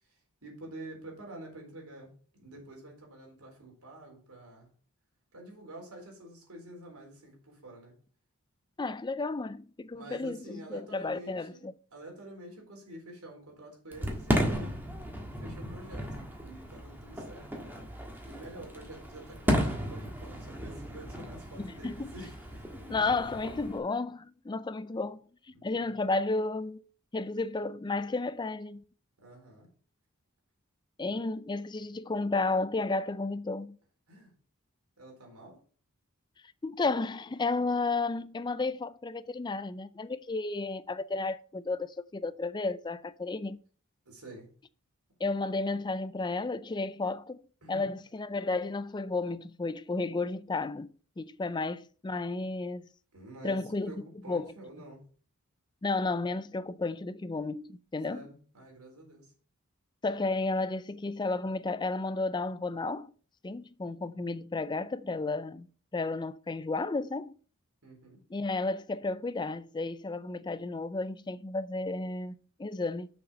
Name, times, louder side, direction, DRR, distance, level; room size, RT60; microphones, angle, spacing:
voice 1, 0.4-4.7 5.3-7.9 9.9-14.7 15.2-17.7 18.2-23.3 25.5-25.9 29.2-29.7 34.1-34.3 35.0-35.6 44.1-44.5 47.6-47.9 53.1-55.0 58.1-59.3 67.8-68.2, right 1 dB, 85° right, 4.0 m, -48 dB
voice 2, 8.8-11.7 21.6-22.1 22.9-25.2 25.5-26.8 27.1-28.8 31.0-33.8 36.6-43.6 45.2-47.4 47.7-50.9 51.2-52.9 53.4-53.9 54.3-54.5 55.8-58.3 60.0-63.1 63.4-65.7 65.9-67.4 68.3-73.1, left 3 dB, 20° left, 0.4 m, -32 dB
Fireworks, 13.9-23.8, equal, 10° right, 1.6 m, -34 dB
6.8 x 6.6 x 5.6 m
head